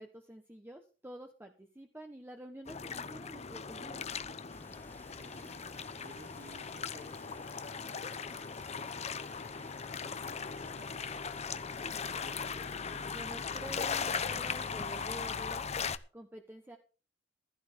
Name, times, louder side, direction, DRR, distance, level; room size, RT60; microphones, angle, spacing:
voice 1, 0.0-4.0 13.1-15.7 16.1-16.8, right 1 dB, 10° right, 3 dB, 1.3 m, -48 dB
sound 1, 2.7-16.0, left 6 dB, 35° left, 0.7 m, -38 dB
sound 2, 4.5-15.2, left 2 dB, 10° left, 0.9 m, -57 dB
voice 2, 5.2-5.6 6.0-12.3, right 1 dB, 45° right, 5 dB, 2.3 m, -58 dB
15.0 x 13.0 x 3.7 m, 0.36 s
head